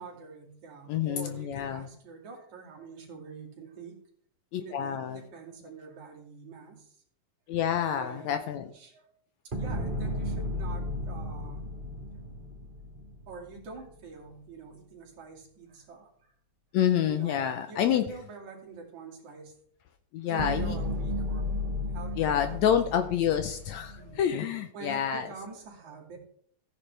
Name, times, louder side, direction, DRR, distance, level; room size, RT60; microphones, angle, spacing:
voice 1, 0.0-4.0 4.6-6.9 7.8-8.4 8.7-9.1 9.5-11.7 13.3-16.3 17.1-19.5 20.2-21.6 21.9-22.7 24.0-24.4 24.7-26.2, right 4 dB, 65° right, 0 dB, 3.7 m, -46 dB
voice 2, 0.9-1.9 4.5-5.2 7.5-8.7 16.7-18.0 20.1-20.8 22.2-25.3, left 9 dB, 75° left, 8 dB, 1.8 m, -28 dB
sound 1, 9.5-13.8 20.4-24.1, left 1 dB, 40° right, 0.7 m, -34 dB
14.5 x 9.6 x 3.3 m, 0.62 s
omnidirectional pair, 3.7 m